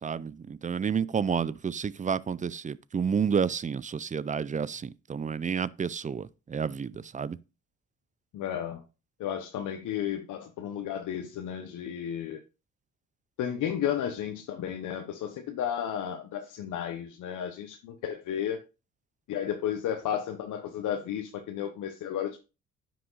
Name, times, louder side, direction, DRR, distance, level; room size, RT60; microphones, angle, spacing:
voice 1, 0.0-7.4, right 6 dB, 25° right, 0.5 m, -30 dB
voice 2, 8.3-8.8 9.2-12.4 13.4-18.6 19.3-22.4, left 9 dB, 80° left, 1.1 m, -33 dB
9.5 x 6.2 x 4.0 m
cardioid pair, 90°, 30 cm